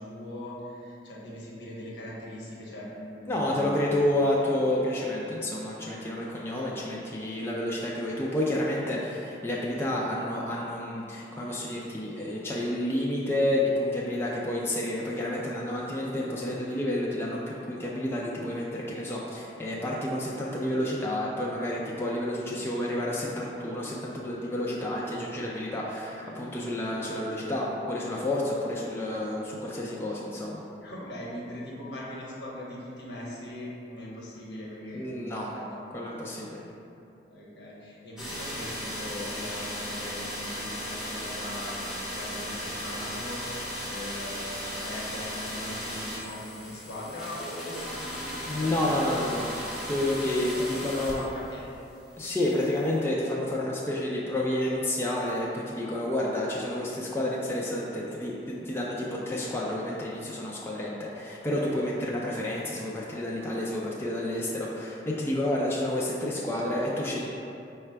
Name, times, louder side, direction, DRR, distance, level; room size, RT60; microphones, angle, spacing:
voice 1, 0.0-3.9 30.8-35.8 37.3-49.1 49.4-49.7 50.5-51.7, left 1 dB, 75° left, -5 dB, 0.9 m, -40 dB
voice 2, 3.3-30.6 34.9-35.5 35.9-36.6 48.5-49.5 49.9-51.3 52.2-67.2, left 1 dB, 15° left, -5 dB, 0.3 m, -30 dB
sound 1, 38.2-51.6 51.9-53.0, equal, 5° right, 1.1 m, -36 dB
4.8 x 2.2 x 4.4 m, 2.8 s
head